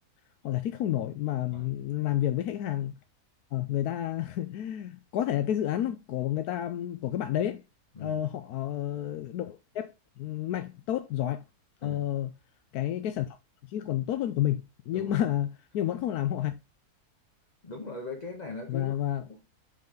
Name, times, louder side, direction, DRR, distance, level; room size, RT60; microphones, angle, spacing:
voice 1, 0.4-3.0 3.5-7.6 8.0-11.4 11.8-12.3 12.7-13.4 13.7-15.5 15.7-16.5 18.7-19.2, left 12 dB, 80° left, 1.1 m, -30 dB
voice 2, 17.6-19.4, left 3 dB, 30° left, 1.2 m, -40 dB
5.5 x 5.3 x 3.8 m
omnidirectional pair, 1.7 m